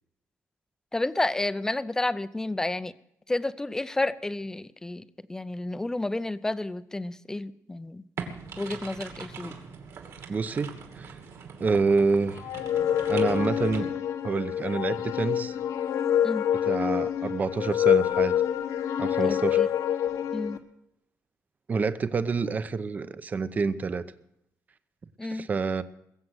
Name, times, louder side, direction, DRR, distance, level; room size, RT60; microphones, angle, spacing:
voice 1, 0.9-2.9 3.3-5.0 5.3-8.0 8.6-9.5 16.2-16.5 19.3-19.7 20.3-20.6 25.2-25.5, left 2 dB, 10° left, 15 dB, 0.5 m, -30 dB
sound 1, 8.2-13.8, right 5 dB, 60° right, 2.6 m, -42 dB
voice 2, 10.3-11.2 11.6-12.5 13.1-13.9 14.2-15.5 16.6-18.3 19.0-19.7 21.7-24.0 25.3-25.8, right 4 dB, 30° right, 13 dB, 0.7 m, -27 dB
sound 2, 12.4-20.6, left 10 dB, 75° left, 1.3 m, -26 dB
21.5 x 7.7 x 7.9 m, 0.78 s
cardioid pair, 155°, 6 cm